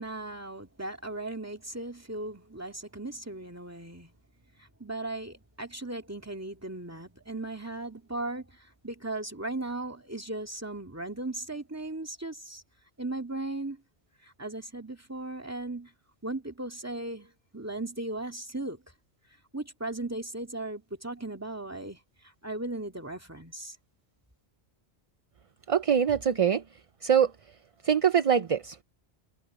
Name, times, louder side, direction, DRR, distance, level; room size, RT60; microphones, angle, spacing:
voice 1, 0.0-4.2 4.6-12.6 13.0-13.8 14.2-15.9 16.2-18.8 19.5-23.8, right 2 dB, 15° right, 2.2 m, -37 dB
voice 2, 25.7-26.6 27.0-27.3 27.8-28.8, right 8 dB, 40° right, 0.5 m, -23 dB
omnidirectional pair, 1.1 m